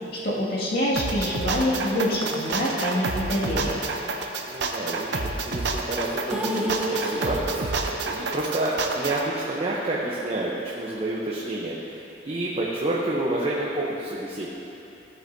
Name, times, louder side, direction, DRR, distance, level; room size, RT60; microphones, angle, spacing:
voice 1, 0.2-3.8, equal, 60° left, -7 dB, 2.1 m, -25 dB
sound 1, 1.0-9.2, right 3 dB, 65° right, 0.7 m, -29 dB
voice 2, 4.4-12.0 12.3-14.5, right 1 dB, 35° right, -5 dB, 0.8 m, -29 dB
sound 2, 6.3-10.4 10.7-10.8 11.2-11.3, right 1 dB, 5° right, 0.6 m, -32 dB
15.0 x 7.8 x 2.7 m, 2.9 s
head